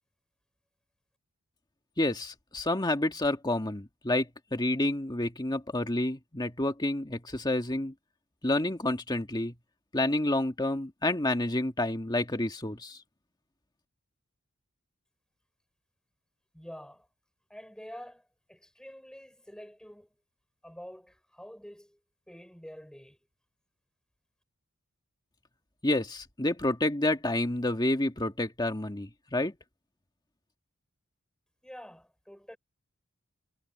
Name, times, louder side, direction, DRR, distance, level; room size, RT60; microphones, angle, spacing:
voice 1, 2.0-7.9 8.4-9.5 9.9-13.0 25.8-29.6, left 1 dB, 20° left, 1.8 m, -29 dB
voice 2, 16.5-17.1 17.5-20.1 20.6-22.0 22.3-23.2 31.6-32.6, equal, 5° left, 5.8 m, -47 dB
head